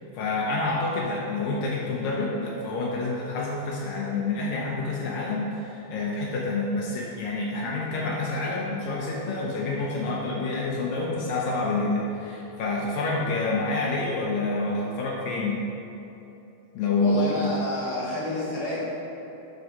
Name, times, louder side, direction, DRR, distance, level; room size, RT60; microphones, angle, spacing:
voice 1, 0.1-15.7 16.8-17.5, left 2 dB, 80° left, -3 dB, 2.1 m, -28 dB
voice 2, 17.0-18.8, left 2 dB, 55° left, -9 dB, 1.5 m, -29 dB
7.8 x 4.7 x 6.4 m, 2.9 s
omnidirectional pair, 4.6 m